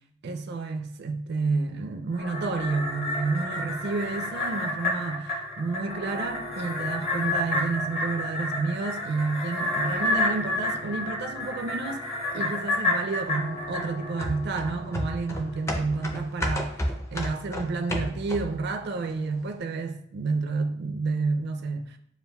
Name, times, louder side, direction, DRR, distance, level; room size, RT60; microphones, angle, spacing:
voice 1, 0.2-12.1 12.3-22.0, right 3 dB, 60° right, 0.4 m, -30 dB
sound 1, 2.1-14.7 15.1-15.2, left 2 dB, 35° left, 0.8 m, -30 dB
sound 2, 2.2-21.1, left 2 dB, 85° left, 1.2 m, -45 dB
sound 3, 14.2-18.7 19.0-19.1, equal, 15° left, 0.4 m, -32 dB
6.9 x 2.4 x 2.3 m
head